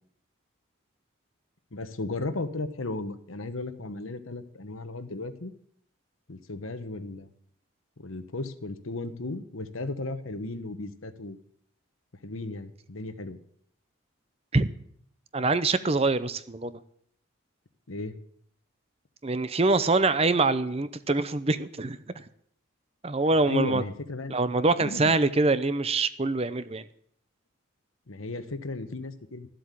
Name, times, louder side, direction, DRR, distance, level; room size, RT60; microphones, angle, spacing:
voice 1, 1.7-5.5 6.3-7.3 8.0-11.4 12.2-13.4 17.9-18.2 23.5-24.3 24.8-25.1 28.1-29.5, left 2 dB, 80° left, 11 dB, 1.2 m, -35 dB
voice 2, 15.3-16.8 19.2-22.2 23.0-23.8 24.3-26.8, right 3 dB, 30° right, 13 dB, 0.6 m, -24 dB
13.5 x 7.9 x 8.4 m, 0.65 s
head